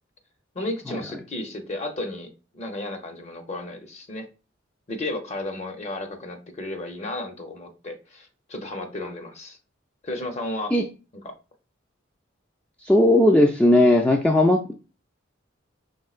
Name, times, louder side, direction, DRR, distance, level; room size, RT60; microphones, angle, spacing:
voice 1, 0.5-2.3 2.5-4.3 4.9-9.6 10.0-10.7 11.2-11.3, left 2 dB, 35° left, 5 dB, 0.7 m, -33 dB
voice 2, 12.8-14.7, left 1 dB, 5° left, 2 dB, 0.3 m, -17 dB
5.3 x 3.5 x 2.4 m, 0.33 s
head